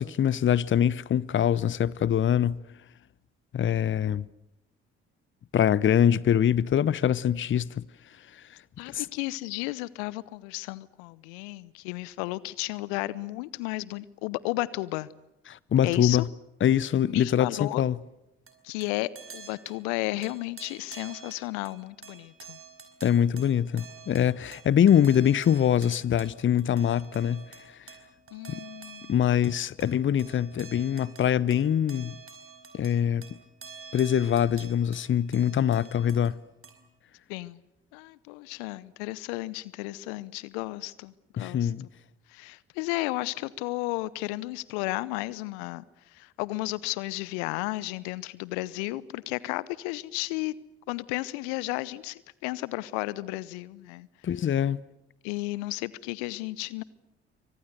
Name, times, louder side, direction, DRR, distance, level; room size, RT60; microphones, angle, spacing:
voice 1, 0.0-2.6 3.5-4.3 5.5-7.8 8.9-9.1 15.5-16.3 16.6-18.0 23.0-27.5 28.5-28.6 29.1-32.2 32.7-33.3 33.9-36.4 41.4-41.9 54.2-54.8, left 9 dB, 35° left, 0.8 m, -24 dB
voice 2, 8.8-15.1 15.8-16.2 17.1-17.8 18.6-22.6 28.3-29.2 37.3-37.6 37.9-41.7 42.3-45.8 46.1-50.6 50.9-54.1 55.2-56.8, left 20 dB, 70° left, 0.8 m, -33 dB
sound 1, 18.5-36.3 36.6-36.8, right 6 dB, 40° right, 4.5 m, -49 dB
28.0 x 24.5 x 6.7 m
figure-of-eight pair, 50°, 34 cm